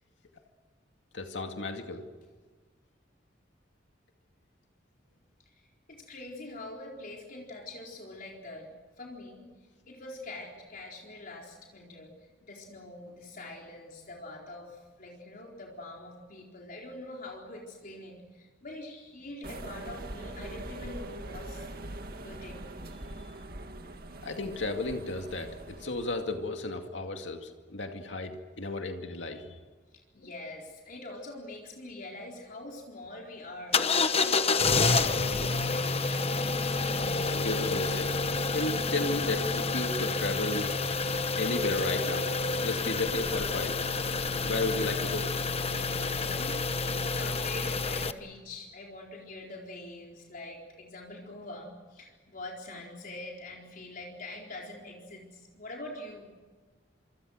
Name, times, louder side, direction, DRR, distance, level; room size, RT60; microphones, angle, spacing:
voice 1, 1.1-2.0 24.2-25.5 25.8-29.5 37.3-40.7 41.4-42.3 42.6-43.8 44.4-45.3, left 2 dB, 80° left, 4 dB, 2.3 m, -33 dB
voice 2, 5.6-8.7 9.0-9.5 9.9-12.1 12.4-21.7 22.2-22.6 30.1-36.1 45.9-46.6 47.0-56.3, left 2 dB, 50° left, -1 dB, 4.3 m, -44 dB
sound 1, 19.4-26.4, right 1 dB, 55° right, 2.1 m, -42 dB
sound 2, 33.7-48.1, left 4 dB, 35° left, 1.1 m, -29 dB
27.5 x 25.5 x 6.5 m, 1.4 s
head